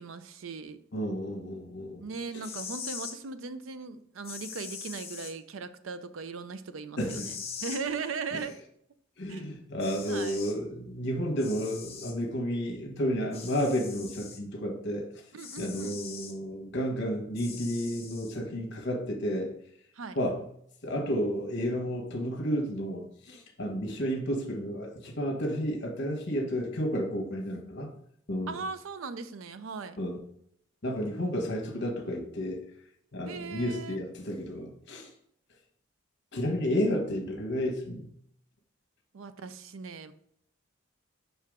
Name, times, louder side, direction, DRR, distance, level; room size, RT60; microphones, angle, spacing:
voice 1, 0.0-0.8 2.0-8.6 9.3-9.4 10.1-10.4 15.3-16.0 19.9-20.2 28.5-30.0 33.2-34.0 39.1-40.1, right 4 dB, 75° right, 12 dB, 0.5 m, -38 dB
voice 2, 0.9-2.0 2.3-2.4 7.0-7.3 8.3-8.4 9.2-15.0 15.6-19.5 20.1-20.4 20.8-27.9 28.3-28.6 30.0-30.2 30.8-32.6 33.1-35.1 36.3-38.1, equal, 55° left, 3 dB, 1.2 m, -31 dB
sound 1, 2.3-3.2 4.2-5.3 7.1-7.8 9.3-9.4 9.8-10.6 11.4-12.2 13.3-14.4 15.4-16.3 17.4-18.3, left 6 dB, 30° left, 0.9 m, -42 dB
5.7 x 4.7 x 3.6 m, 0.69 s
head